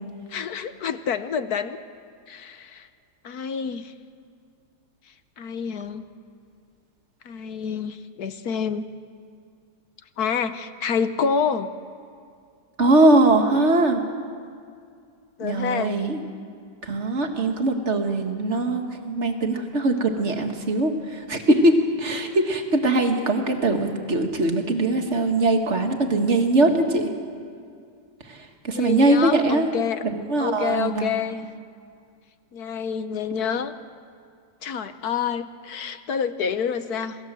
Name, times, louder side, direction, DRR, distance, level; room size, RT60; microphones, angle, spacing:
voice 1, 0.3-1.8 2.3-2.9 3.2-3.9 5.4-6.1 7.2-8.8 10.2-11.7 15.4-16.0 28.7-30.0 30.4-31.5 32.5-33.7 34.6-37.2, left 6 dB, 60° left, 11 dB, 1.3 m, -28 dB
voice 2, 12.8-14.0 15.4-16.2 16.8-27.1 28.3-29.8 30.0-31.1, right 2 dB, 40° right, 4 dB, 2.1 m, -21 dB
27.5 x 19.0 x 7.6 m, 2.3 s
omnidirectional pair, 2.0 m